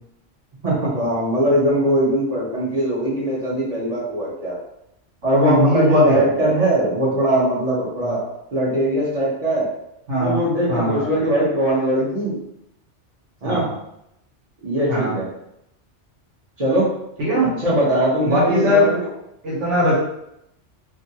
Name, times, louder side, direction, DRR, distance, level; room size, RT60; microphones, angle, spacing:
voice 1, 0.6-4.6 5.2-8.2 8.5-9.7 10.2-12.4 13.4-13.7 14.6-15.3 16.6-16.9 17.6-19.1, right 1 dB, 35° right, -6 dB, 0.7 m, -20 dB
voice 2, 5.3-6.3 8.0-8.1 10.1-10.4 10.7-11.1 13.4-13.7 14.9-15.1 17.2-17.5 18.2-18.9 19.4-20.0, left 1 dB, 80° right, -5 dB, 1.3 m, -19 dB
2.6 x 2.5 x 2.7 m, 0.81 s
omnidirectional pair, 1.2 m